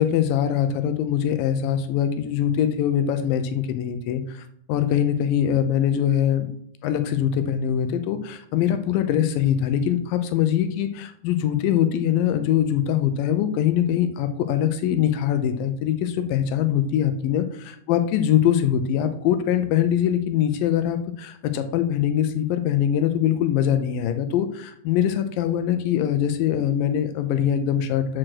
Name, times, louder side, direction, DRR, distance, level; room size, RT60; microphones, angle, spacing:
voice 1, 0.0-6.5 6.8-17.5 17.9-28.2, left 10 dB, 80° left, 9 dB, 2.3 m, -23 dB
6.1 x 4.7 x 6.2 m, 0.68 s
omnidirectional pair, 4.1 m